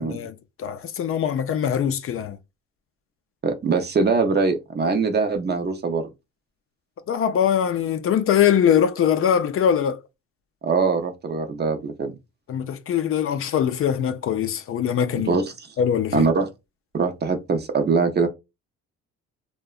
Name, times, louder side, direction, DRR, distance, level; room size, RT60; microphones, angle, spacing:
voice 1, 0.0-2.4 7.1-10.0 12.5-15.4 15.8-16.3, left 9 dB, 50° left, 0.4 m, -22 dB
voice 2, 3.4-6.1 10.6-12.1 15.1-15.5 16.1-16.5 16.9-18.3, right 4 dB, 35° right, 0.5 m, -22 dB
2.7 x 2.2 x 2.3 m
cardioid pair, 90°, 30 cm